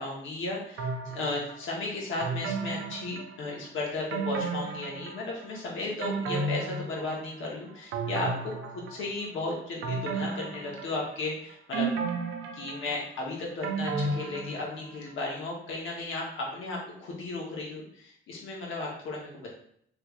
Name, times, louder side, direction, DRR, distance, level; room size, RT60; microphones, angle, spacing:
voice 1, 0.0-11.9 12.5-19.5, left 2 dB, 80° left, -2 dB, 1.2 m, -35 dB
sound 1, 0.8-1.6 2.2-3.6 4.1-5.4 5.8-7.5 7.9-9.3 9.8-11.3 11.7-15.0 15.3-15.4, right 3 dB, 90° right, 0.5 m, -33 dB
3.2 x 3.0 x 2.5 m, 0.67 s
cardioid pair, 90°, 20 cm